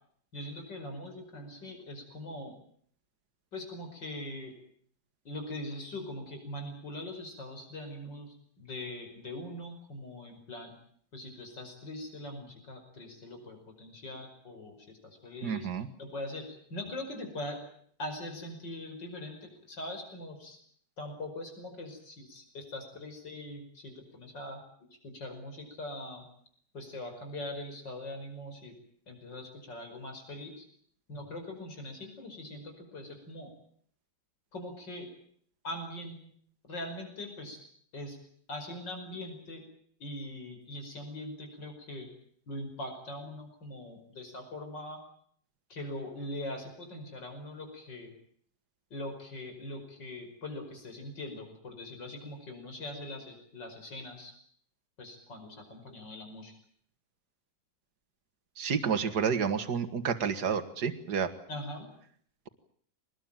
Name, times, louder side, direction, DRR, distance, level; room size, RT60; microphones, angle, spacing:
voice 1, 0.3-2.5 3.5-4.5 5.2-10.7 11.1-15.7 16.0-17.6 18.0-20.6 21.0-24.6 25.0-26.2 26.7-28.7 29.1-30.6 31.1-33.5 34.5-35.1 35.6-36.2 36.7-37.6 37.9-38.2 38.5-39.6 40.0-42.1 42.5-45.0 45.7-48.1 48.9-54.3 55.0-56.6 61.5-61.9, left 1 dB, 75° left, 5 dB, 6.0 m, -42 dB
voice 2, 15.4-15.9 58.6-61.3, right 6 dB, 60° right, 9 dB, 2.3 m, -30 dB
24.5 x 20.0 x 9.0 m, 0.62 s
omnidirectional pair, 2.0 m